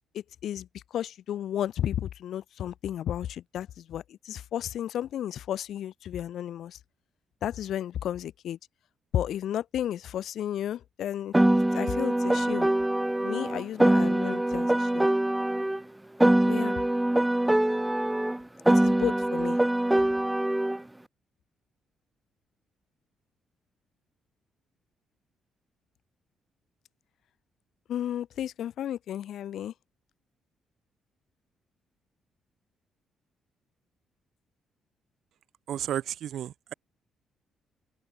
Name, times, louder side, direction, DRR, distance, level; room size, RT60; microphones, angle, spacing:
voice 1, 0.1-6.8 7.4-8.6 9.1-12.7 13.2-15.1 16.5-16.8 18.7-19.6 27.9-29.7, left 11 dB, 70° left, 3.8 m, -33 dB
Piano, 11.3-15.8 16.2-20.8, right 1 dB, 10° right, 0.5 m, -24 dB
voice 2, 35.7-36.7, right 11 dB, 70° right, 5.8 m, -33 dB
open air
cardioid pair, 90°, 0 cm